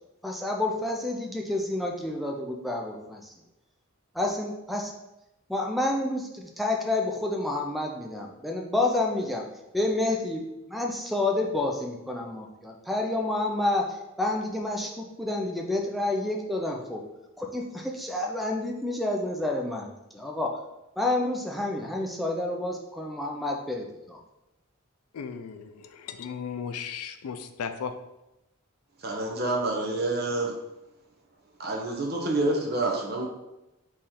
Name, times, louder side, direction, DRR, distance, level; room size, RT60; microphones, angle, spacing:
voice 1, 0.2-3.3 4.1-4.9 5.5-9.5 9.7-17.0 17.4-20.6 21.0-24.2, left 2 dB, ahead, 1 dB, 0.4 m, -29 dB
voice 2, 25.1-27.9, left 6 dB, 85° left, 8 dB, 0.4 m, -36 dB
voice 3, 29.0-30.5 31.6-33.3, right 2 dB, 45° right, 0 dB, 0.8 m, -27 dB
4.3 x 3.1 x 3.8 m, 0.93 s
head